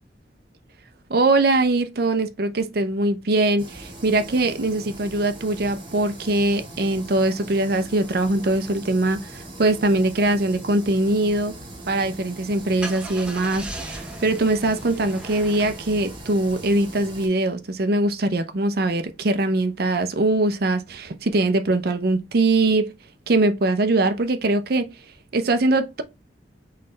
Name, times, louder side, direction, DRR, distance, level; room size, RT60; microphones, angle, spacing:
voice 1, 1.1-11.5 11.9-22.9 23.3-24.9 25.3-26.0, right 2 dB, 60° right, 0.6 m, -22 dB
sound 1, 3.6-17.3, right 1 dB, 30° right, 1.6 m, -40 dB
Car / Engine starting, 12.4-17.1, right 1 dB, 5° right, 0.8 m, -39 dB
4.0 x 3.2 x 3.9 m
head